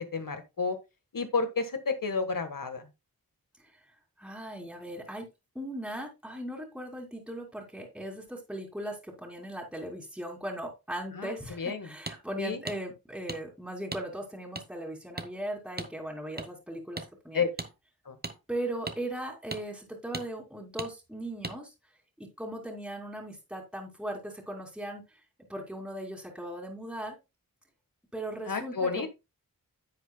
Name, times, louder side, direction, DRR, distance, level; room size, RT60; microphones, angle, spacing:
voice 1, 0.1-0.8 1.1-2.9 11.2-11.9 12.4-12.6 17.3-17.5 18.1-18.2 28.5-29.1, left 4 dB, 65° left, 9 dB, 1.5 m, -31 dB
voice 2, 4.2-5.3 5.5-17.4 18.5-21.7 22.2-25.2 25.5-27.2 28.1-29.1, right 1 dB, 5° right, 0 dB, 2.6 m, -38 dB
sound 1, 12.1-12.2 12.7-12.8 13.3-13.4 13.9-14.0 14.5-14.6 15.2-15.3 15.8-15.9 16.4-16.5 17.0-17.1 17.6-17.7 18.2-18.3 18.9-19.0 19.5-19.6 20.1-20.3 20.8-20.9 21.4-21.6, right 2 dB, 25° right, 1.0 m, -37 dB
10.0 x 7.7 x 2.3 m, 0.24 s
wide cardioid pair, 60°, 35 cm